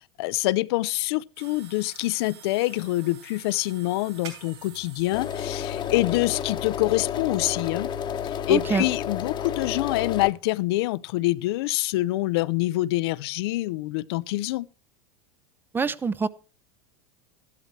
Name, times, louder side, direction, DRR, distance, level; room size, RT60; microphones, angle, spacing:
voice 1, 0.2-7.9 8.5-14.7, left 18 dB, 65° left, 0.5 m, -26 dB
sound 1, 1.4-8.2, right 6 dB, 85° right, 7.5 m, -49 dB
sound 2, 5.1-10.3, left 8 dB, 35° left, 1.0 m, -31 dB
voice 2, 8.5-8.8 15.7-16.3, right 5 dB, 15° right, 0.5 m, -25 dB
13.0 x 11.5 x 3.2 m
supercardioid pair, 115°, 14 cm